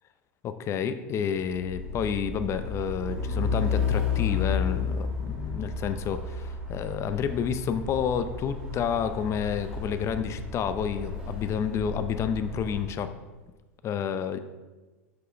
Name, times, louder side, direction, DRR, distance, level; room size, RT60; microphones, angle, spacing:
voice 1, 0.4-13.1 13.8-14.4, left 7 dB, 40° left, 10 dB, 0.6 m, -30 dB
Truck, 1.6-12.9, left 5 dB, 10° right, 1.8 m, -32 dB
6.1 x 5.4 x 5.2 m, 1.2 s
hypercardioid pair, 95°, 8 cm